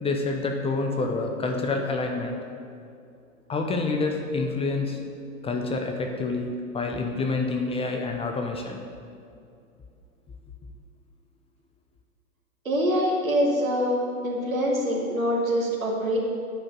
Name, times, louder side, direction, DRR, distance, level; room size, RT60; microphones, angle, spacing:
voice 1, 0.0-2.4 3.5-5.0 5.4-8.8, left 3 dB, 15° left, 3 dB, 0.7 m, -27 dB
voice 2, 12.6-16.2, equal, 80° right, -3 dB, 2.5 m, -24 dB
10.0 x 5.2 x 7.4 m, 2.5 s
figure-of-eight pair, 95°, 40 cm